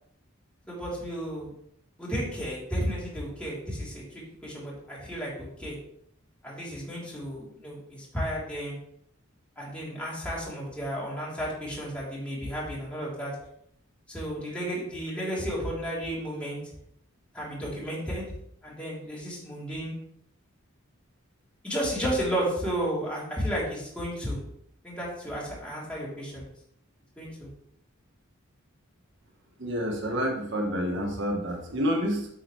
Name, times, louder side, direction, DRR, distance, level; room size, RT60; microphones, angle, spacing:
voice 1, 0.7-1.5 2.0-5.8 6.4-8.8 9.6-13.3 14.1-16.6 17.3-18.2 18.6-19.9 21.6-24.4 24.8-26.5 27.2-27.5, equal, 5° left, -7 dB, 3.3 m, -33 dB
voice 2, 29.6-32.3, equal, 60° right, 1 dB, 1.4 m, -28 dB
8.9 x 7.9 x 3.2 m, 0.70 s
head